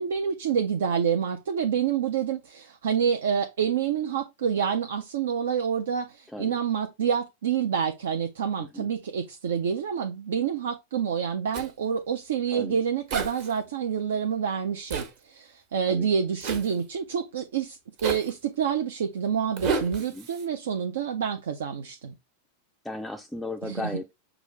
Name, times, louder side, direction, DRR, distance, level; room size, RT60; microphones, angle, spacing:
voice 1, 0.0-22.1 23.6-23.9, right 7 dB, 60° right, 0.5 m, -28 dB
Zipper (clothing), 11.5-11.7 13.1-13.5 14.9-15.1 16.4-16.7 18.0-18.3 19.6-20.4, right 5 dB, 45° right, 1.2 m, -31 dB
voice 2, 22.8-24.1, left 2 dB, 5° left, 0.4 m, -36 dB
6.0 x 2.5 x 3.1 m
figure-of-eight pair, 90°, 0 cm